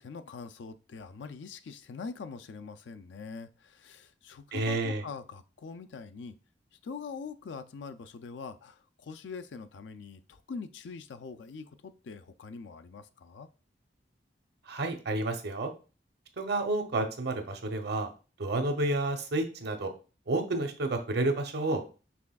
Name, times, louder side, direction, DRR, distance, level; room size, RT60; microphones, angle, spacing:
voice 1, 0.0-6.4 6.8-13.5, left 5 dB, 90° left, 10 dB, 0.4 m, -43 dB
voice 2, 4.5-5.0 14.7-15.7 16.4-18.1 18.4-19.9 20.3-22.0, right 2 dB, 65° right, 6 dB, 0.7 m, -30 dB
6.0 x 3.4 x 2.3 m, 0.35 s
head